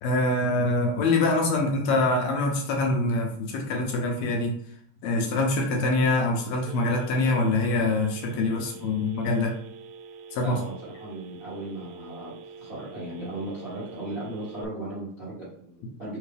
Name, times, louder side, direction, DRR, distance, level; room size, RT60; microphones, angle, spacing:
voice 1, 0.0-4.5 5.0-9.5 10.3-10.6, left 2 dB, 75° left, 1 dB, 1.8 m, -24 dB
Telephone, 6.7-14.6, right 5 dB, 85° right, 1.9 m, -45 dB
voice 2, 10.4-16.2, right 1 dB, 35° right, -9 dB, 0.9 m, -37 dB
4.5 x 3.3 x 3.3 m, 0.63 s
omnidirectional pair, 3.4 m